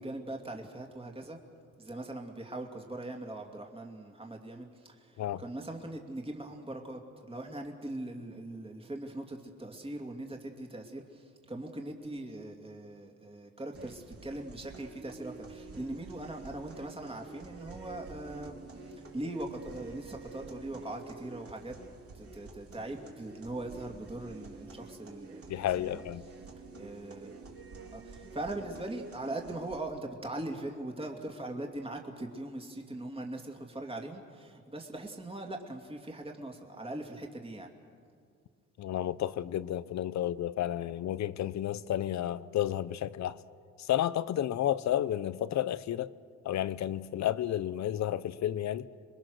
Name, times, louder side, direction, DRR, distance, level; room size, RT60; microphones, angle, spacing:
voice 1, 0.0-1.4 1.8-21.8 22.1-26.0 26.8-27.4 27.9-37.7, right 1 dB, 20° right, 2.5 m, -41 dB
sound 1, 13.7-29.8, right 4 dB, 50° right, 3.1 m, -48 dB
voice 2, 25.5-26.3 38.8-43.4 43.8-46.1 46.4-48.9, left 12 dB, 65° left, 0.8 m, -31 dB
27.0 x 22.0 x 6.5 m
cardioid pair, 90°, 30 cm